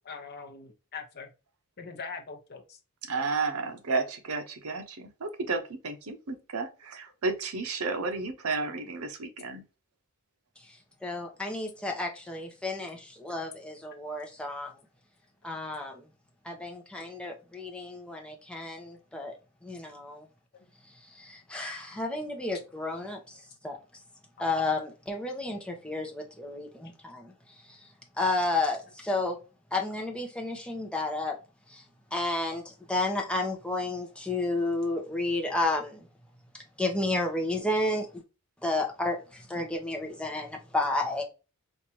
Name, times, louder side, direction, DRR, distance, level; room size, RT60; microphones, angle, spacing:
voice 1, 0.0-1.3 1.8-2.8 20.5-20.6 26.4-26.6, left 5 dB, 45° left, 0.8 m, -42 dB
voice 2, 3.0-9.6, right 4 dB, 75° right, 0.8 m, -32 dB
voice 3, 11.0-14.7 15.4-16.1 16.4-19.3 19.6-20.3 21.1-23.8 24.4-27.3 27.7-27.8 28.2-29.4 29.7-31.4 31.7-31.8 32.1-36.1 36.5-38.2 38.6-41.2, left 2 dB, 5° left, 0.7 m, -31 dB
4.4 x 2.5 x 2.7 m
head